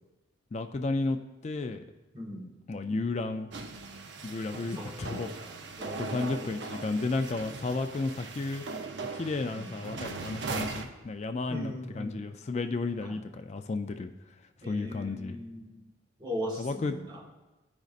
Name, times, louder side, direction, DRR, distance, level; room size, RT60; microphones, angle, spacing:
voice 1, 0.5-1.2 1.4-1.8 2.7-3.5 4.2-5.3 6.0-8.6 9.1-14.1 14.7-15.4 16.6-16.9, left 3 dB, 35° left, 8 dB, 0.3 m, -32 dB
voice 2, 2.1-2.5 4.7-5.2 5.8-6.7 9.6-9.7 11.5-12.2 13.0-13.2 14.6-15.9 16.2-17.3, equal, 25° right, -4 dB, 1.4 m, -39 dB
sound 1, 3.5-10.9, right 3 dB, 65° right, 0.6 m, -39 dB
13.0 x 5.2 x 2.5 m, 1.1 s
head